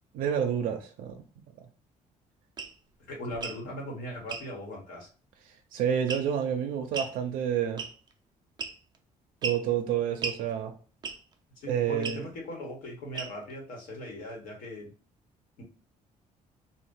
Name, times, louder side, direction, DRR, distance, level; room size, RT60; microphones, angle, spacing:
voice 1, 0.1-1.2 1.6-1.7 5.7-7.8 9.4-10.7 11.7-12.2, right 9 dB, 85° right, 0.5 m, -29 dB
sound 1, 2.6-2.7 3.3-3.6 4.3-4.5 6.1-6.4 6.9-7.2 7.8-8.1 8.6-9.0 9.4-9.6 10.2-10.4 11.0-11.3 12.0-12.2 13.1-13.5, right 4 dB, 30° right, 0.4 m, -35 dB
voice 2, 3.1-5.1 11.6-14.9 15.6-15.7, equal, 80° left, 1.3 m, -39 dB
2.7 x 2.4 x 3.7 m
cardioid pair, 155°, 14 cm